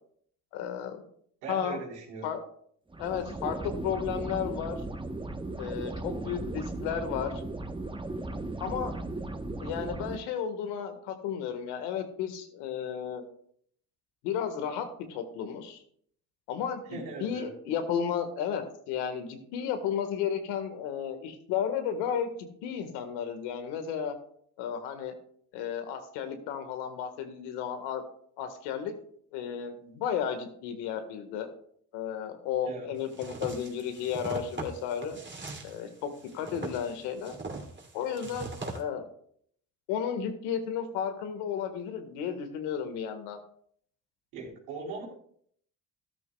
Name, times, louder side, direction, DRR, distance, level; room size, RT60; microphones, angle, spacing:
voice 1, 0.5-1.0 1.5-1.8 2.2-2.4 3.0-4.8 5.6-7.3 8.6-8.9 9.6-13.3 14.2-15.8 16.5-24.1 24.6-25.1 25.5-28.0 28.4-28.9 29.3-31.5 31.9-35.2 35.6-37.3 37.9-39.1 39.9-43.4, left 8 dB, 80° left, 7 dB, 1.7 m, -33 dB
voice 2, 1.4-2.3 16.9-17.5 32.6-32.9 44.3-45.0, right 3 dB, 90° right, -3 dB, 4.2 m, -39 dB
sound 1, 2.9-10.2, right 2 dB, 10° right, 1.0 m, -36 dB
sound 2, 33.1-38.8, right 3 dB, 25° right, 2.8 m, -40 dB
13.0 x 12.5 x 2.3 m, 0.64 s
supercardioid pair, 65°, 40 cm